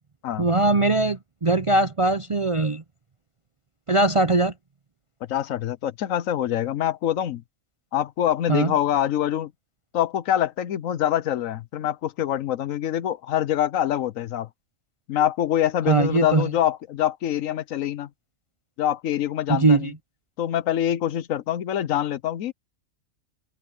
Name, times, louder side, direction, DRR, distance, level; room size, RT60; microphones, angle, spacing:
voice 1, 0.4-2.8 3.9-4.5 8.5-8.7 15.9-16.5 19.5-19.9, right 2 dB, 35° right, 0.5 m, -20 dB
voice 2, 5.3-7.4 7.9-9.5 9.9-14.5 15.1-18.1 18.8-19.9 20.4-22.5, left 11 dB, 75° left, 1.1 m, -25 dB
open air
omnidirectional pair, 1.4 m